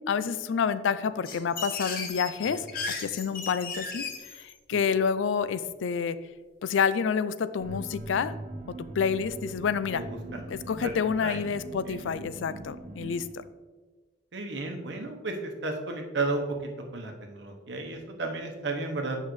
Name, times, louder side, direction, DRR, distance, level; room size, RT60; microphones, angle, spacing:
voice 1, 0.1-2.7 3.0-4.1 4.3-6.2 6.6-8.3 9.0-10.0 10.5-13.4, left 6 dB, 85° left, 14 dB, 0.4 m, -28 dB
sound 1, 1.2-4.5, left 4 dB, 50° left, 0.9 m, -35 dB
sound 2, 7.6-13.3, right 2 dB, 40° right, 0.6 m, -41 dB
voice 2, 9.9-10.4 10.8-10.9 11.2-11.4 11.9-12.0 14.3-19.2, right 2 dB, 70° right, 3 dB, 1.0 m, -33 dB
8.1 x 5.5 x 3.2 m, 1.4 s
head